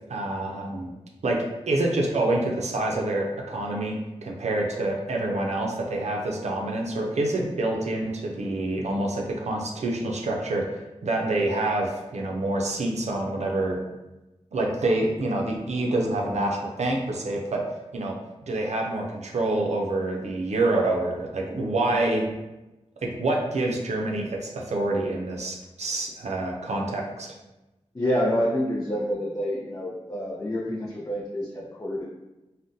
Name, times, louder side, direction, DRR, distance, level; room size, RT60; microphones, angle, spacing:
voice 1, 0.1-0.9 1.2-10.6 11.0-13.8 14.5-17.6 17.9-18.2 18.5-22.3 23.0-27.3, right 2 dB, 75° right, 0 dB, 0.5 m, -27 dB
voice 2, 27.9-32.0, equal, 30° left, -5 dB, 0.5 m, -27 dB
3.6 x 2.1 x 2.6 m, 1.0 s
cardioid pair, 45°, 11 cm